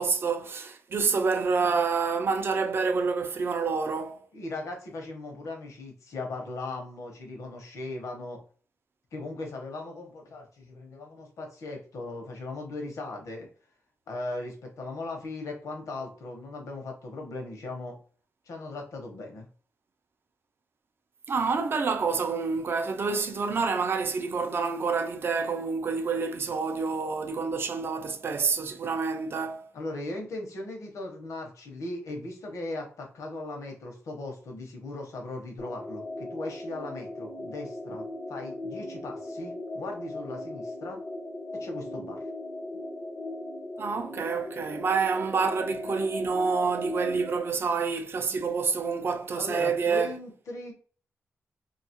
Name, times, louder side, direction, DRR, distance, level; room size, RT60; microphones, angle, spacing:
voice 1, 0.0-4.2 21.3-29.7 43.8-50.1, right 5 dB, 45° right, 0.4 m, -28 dB
voice 2, 4.3-8.4 9.1-13.5 14.1-18.0 18.5-19.5 29.7-41.0 41.5-42.2 49.3-50.7, left 2 dB, 85° left, 0.7 m, -38 dB
sound 1, 35.6-47.5, left 1 dB, 30° left, 0.4 m, -38 dB
2.7 x 2.3 x 2.7 m
wide cardioid pair, 130°, 5 cm